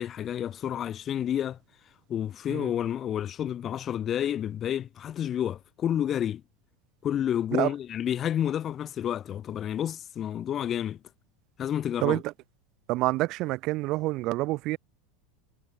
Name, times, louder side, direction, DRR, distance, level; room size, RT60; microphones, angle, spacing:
voice 1, 0.0-1.6 2.1-6.4 7.0-11.0 11.6-12.2, left 10 dB, 30° left, 7.3 m, -30 dB
voice 2, 12.0-12.3 12.9-14.8, right 19 dB, 50° right, 3.7 m, -27 dB
supercardioid pair, 135°, 0 cm